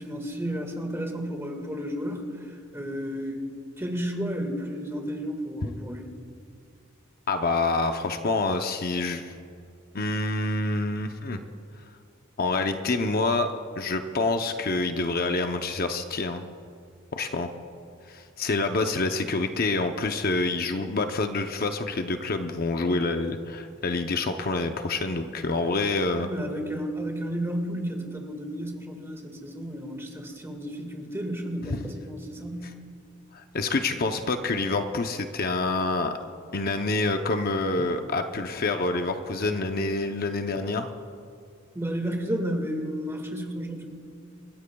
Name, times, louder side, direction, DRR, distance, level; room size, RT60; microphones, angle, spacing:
voice 1, 0.0-2.5 2.7-3.5 3.8-6.1 26.2-32.8 41.7-43.9, equal, 15° right, 3 dB, 1.8 m, -32 dB
voice 2, 7.3-9.3 9.9-11.4 12.4-13.5 13.8-16.4 17.1-17.5 18.1-26.3 33.3-36.1 36.5-40.9, left 3 dB, 50° left, 6 dB, 0.7 m, -27 dB
28.0 x 14.5 x 2.3 m, 2.5 s
head